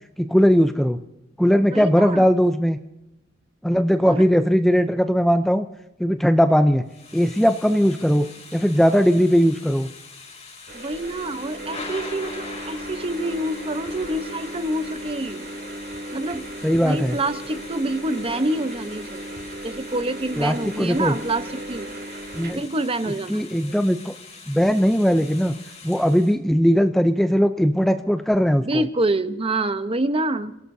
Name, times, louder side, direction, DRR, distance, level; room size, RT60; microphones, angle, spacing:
voice 1, 0.2-1.0 1.4-2.8 3.6-5.7 6.0-6.8 7.1-9.9 16.6-17.2 20.4-21.1 22.3-22.6 23.3-24.1 24.5-25.6 25.8-28.8, equal, ahead, 8 dB, 0.5 m, -19 dB
voice 2, 1.7-2.3 4.1-4.2 10.7-15.4 16.1-16.5 16.8-19.4 19.6-21.9 22.5-23.7 28.6-30.5, right 1 dB, 30° right, 10 dB, 0.9 m, -27 dB
Thunder / Rain, 6.9-26.4, left 4 dB, 35° left, 3.0 m, -43 dB
sound 1, 10.7-22.5, right 1 dB, 55° right, 2.4 m, -36 dB
28.5 x 17.5 x 2.7 m, 0.93 s
head